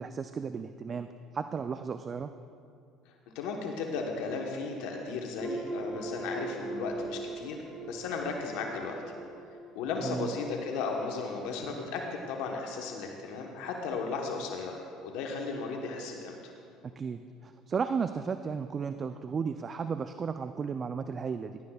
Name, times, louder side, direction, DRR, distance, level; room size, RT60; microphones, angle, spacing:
voice 1, 0.0-2.3 10.0-10.3 16.8-21.6, right 6 dB, 35° right, 10 dB, 0.3 m, -34 dB
voice 2, 3.3-7.6 7.8-8.9 9.7-16.5, left 4 dB, 75° left, 1 dB, 1.1 m, -35 dB
sound 1, 5.4-10.8, right 2 dB, ahead, 1.5 m, -40 dB
17.5 x 11.5 x 2.3 m, 2.5 s
supercardioid pair, 85°, 0 cm